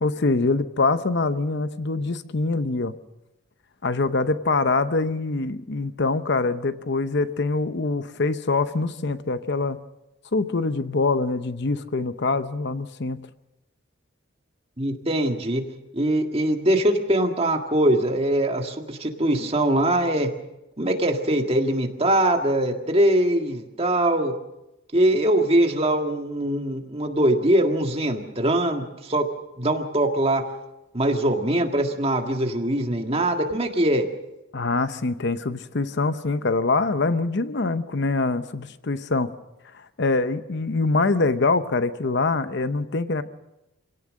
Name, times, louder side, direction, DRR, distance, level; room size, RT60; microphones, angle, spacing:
voice 1, 0.0-2.9 3.8-9.8 10.3-13.3 34.5-39.3 39.7-43.2, left 3 dB, 55° left, 12 dB, 0.8 m, -24 dB
voice 2, 14.8-15.6 15.9-20.3 20.8-24.3 24.9-29.2 29.6-30.4 30.9-34.1, right 1 dB, 30° right, 4 dB, 1.8 m, -22 dB
26.0 x 17.5 x 6.4 m, 0.93 s
head